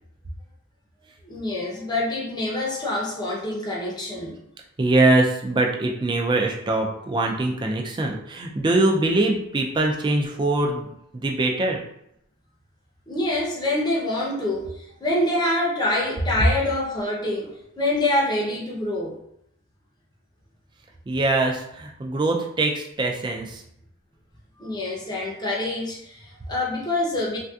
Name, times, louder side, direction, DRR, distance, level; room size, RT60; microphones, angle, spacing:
voice 1, 1.2-4.3 13.1-19.2 24.6-27.4, left 1 dB, 20° left, -4 dB, 0.6 m, -26 dB
voice 2, 4.8-10.9 11.1-11.8 21.1-23.6, right 2 dB, 20° right, 1 dB, 0.3 m, -22 dB
3.3 x 2.6 x 2.3 m, 0.77 s
head